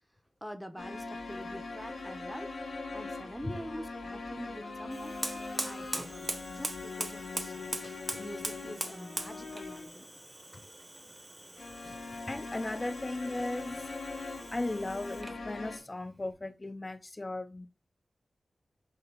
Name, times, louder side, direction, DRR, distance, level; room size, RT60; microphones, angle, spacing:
voice 1, 0.4-2.5 2.9-5.2 5.6-10.1, equal, ahead, 0.9 m, -45 dB
sound 1, 0.8-10.0 11.6-15.8, left 3 dB, 80° left, 0.8 m, -41 dB
Fire, 4.9-15.5, right 1 dB, 25° right, 1.3 m, -41 dB
voice 2, 12.3-13.9 14.5-17.7, left 2 dB, 35° left, 0.6 m, -36 dB
3.9 x 2.8 x 4.4 m
cardioid pair, 45°, 0 cm